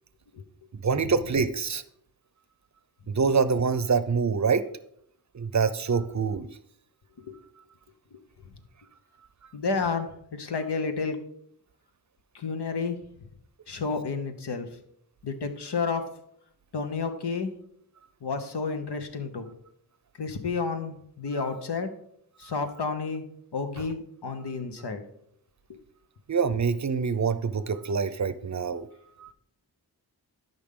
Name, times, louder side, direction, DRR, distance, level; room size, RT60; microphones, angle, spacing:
voice 1, 0.8-1.8 3.1-4.7 5.3-6.5 21.4-21.5 22.4-22.5 26.3-28.9 29.2-29.3, right 5 dB, 45° right, 14 dB, 0.6 m, -25 dB
voice 2, 9.5-11.2 12.3-13.0 13.7-14.7 15.2-16.0 16.7-17.5 18.2-19.5 20.2-21.9 22.4-23.2 23.5-25.0 25.7-25.8, left 4 dB, 90° left, 7 dB, 1.0 m, -31 dB
12.0 x 5.4 x 3.7 m, 0.70 s
wide cardioid pair, 55°, 39 cm